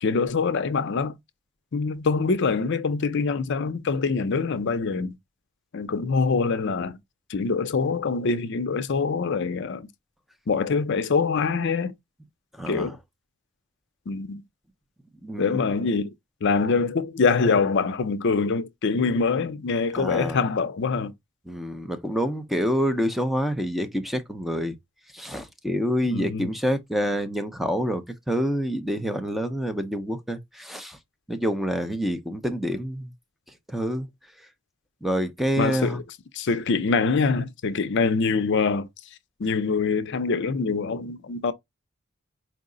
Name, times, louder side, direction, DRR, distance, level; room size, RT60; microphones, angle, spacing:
voice 1, 0.0-1.2 1.7-5.2 5.7-7.0 7.3-9.9 10.5-11.9 12.7-13.0 14.1-14.4 15.4-16.1 16.4-21.1 26.0-26.5 35.6-36.0 36.3-38.9 39.4-41.5, left 4 dB, 55° left, 0.5 m, -24 dB
voice 2, 12.5-13.0 15.2-15.7 19.9-20.4 21.5-24.8 25.1-31.0 31.3-33.1 33.7-34.1 35.0-36.0, equal, ahead, 0.4 m, -27 dB
4.6 x 2.1 x 3.7 m
head